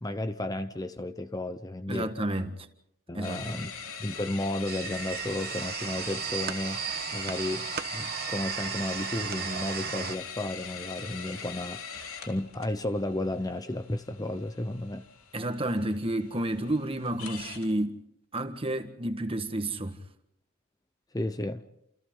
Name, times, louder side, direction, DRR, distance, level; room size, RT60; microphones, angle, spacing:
voice 1, 0.0-2.1 3.1-3.7 4.0-6.8 7.1-7.7 7.9-15.1 21.1-21.6, left 1 dB, 15° left, 0.8 m, -33 dB
voice 2, 1.9-2.7 3.1-3.7 15.3-18.0 18.3-20.0, right 1 dB, 25° right, 1.6 m, -31 dB
sound 1, 3.2-17.7, left 6 dB, 70° left, 3.5 m, -42 dB
sound 2, 4.7-10.2, right 9 dB, 45° right, 1.2 m, -35 dB
30.0 x 28.5 x 3.9 m
head